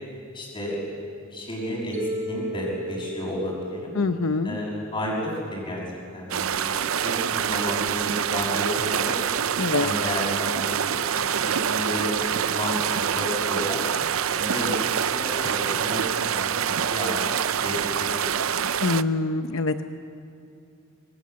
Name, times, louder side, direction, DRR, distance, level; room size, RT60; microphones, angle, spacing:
voice 1, 0.3-0.9 1.3-4.0 4.4-5.8 6.1-9.1 9.8-13.8 14.3-14.7 15.1-17.4 17.6-18.4, left 1 dB, 25° left, -8 dB, 6.3 m, -32 dB
Mallet percussion, 1.9-6.1, equal, 40° right, 2.9 m, -36 dB
voice 2, 4.0-4.5 9.6-9.9 18.8-19.9, left 3 dB, 75° left, 8 dB, 0.8 m, -24 dB
sound 1, 6.3-19.0, right 8 dB, 85° right, 0.6 m, -26 dB
27.5 x 23.0 x 7.6 m, 2.6 s
head